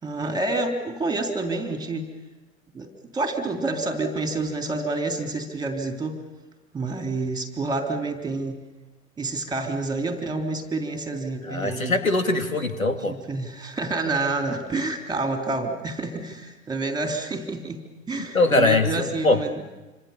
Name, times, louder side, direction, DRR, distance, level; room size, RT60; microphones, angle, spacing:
voice 1, 0.0-2.1 2.7-6.2 6.7-8.6 9.2-12.0 13.0-17.8 18.1-19.5, right 2 dB, 10° right, 5 dB, 3.4 m, -28 dB
voice 2, 11.4-13.2 18.3-19.4, left 2 dB, 85° left, 8 dB, 2.2 m, -22 dB
27.0 x 26.0 x 7.1 m, 1.1 s
figure-of-eight pair, 95°, 40 cm